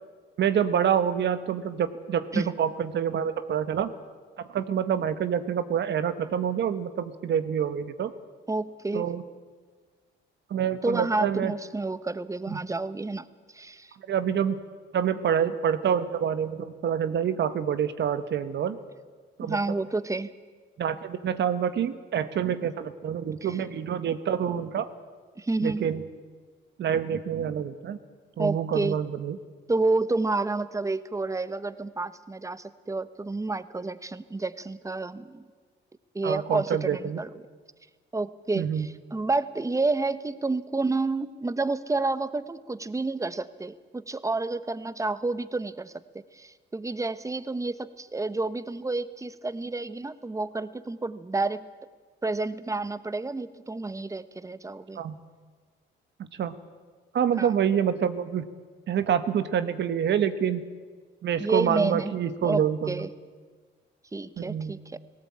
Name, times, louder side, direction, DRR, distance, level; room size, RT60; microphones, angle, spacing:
voice 1, 0.4-3.9 4.5-8.1 8.9-9.2 10.5-11.5 12.5-12.6 14.1-14.6 14.9-18.8 19.4-19.6 20.8-24.9 25.6-26.0 26.8-28.0 28.4-29.4 36.2-37.2 38.5-38.9 54.9-55.1 56.2-56.6 57.1-58.5 58.9-60.6 61.2-63.1 64.4-64.7, right 8 dB, 65° right, 12 dB, 1.2 m, -27 dB
voice 2, 8.5-9.1 10.8-13.3 13.5-14.0 19.4-20.3 23.4-23.6 25.4-25.9 28.4-29.0 29.7-35.4 36.1-37.3 38.1-51.7 52.2-55.0 57.4-57.6 61.4-62.1 62.4-63.1 64.1-65.0, right 3 dB, 15° right, 15 dB, 1.0 m, -30 dB
18.0 x 17.5 x 8.7 m, 1.5 s
cardioid pair, 90°, 20 cm